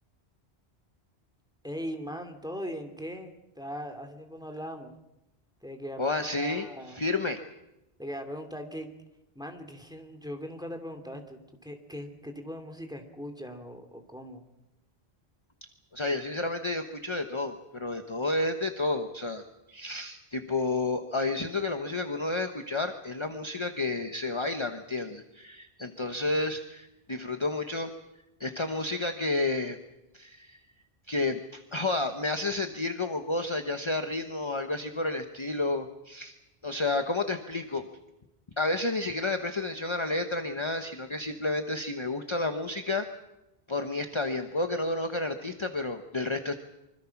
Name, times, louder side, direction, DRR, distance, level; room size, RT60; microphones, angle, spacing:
voice 1, 1.6-4.9 5.6-7.1 8.0-8.9 9.3-14.4, equal, 5° right, 5 dB, 2.7 m, -40 dB
voice 2, 6.0-7.4 15.9-27.9 28.4-29.8 30.1-30.6 31.1-36.3 36.6-37.8 38.6-43.0 43.7-46.6, left 2 dB, 30° left, 6 dB, 1.2 m, -31 dB
25.5 x 25.0 x 6.0 m, 0.96 s
omnidirectional pair, 1.1 m